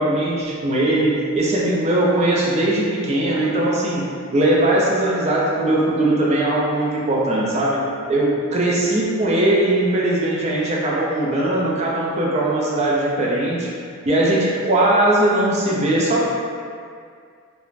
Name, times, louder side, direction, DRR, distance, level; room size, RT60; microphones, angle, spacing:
voice 1, 0.0-4.0 4.3-7.8 8.1-13.7 14.1-16.3, right 1 dB, 30° right, -4 dB, 0.4 m, -19 dB
2.4 x 2.1 x 3.1 m, 2.2 s
head